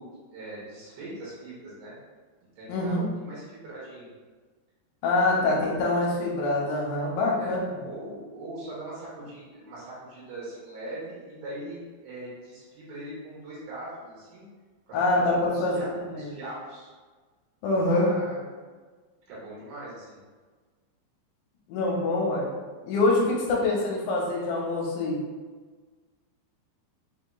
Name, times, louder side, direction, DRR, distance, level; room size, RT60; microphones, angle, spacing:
voice 1, 0.0-2.0 2.6-4.1 7.4-7.5 7.8-14.5 14.9-15.9 16.1-16.9 17.9-18.4 19.3-20.2, right 1 dB, 75° right, -7 dB, 3.3 m, -41 dB
voice 2, 2.7-3.1 5.0-7.8 14.9-15.8 16.1-16.3 17.6-18.1 21.7-22.5 22.8-25.2, left 2 dB, 80° left, -3 dB, 2.9 m, -25 dB
7.3 x 2.8 x 2.2 m, 1.4 s
omnidirectional pair, 5.3 m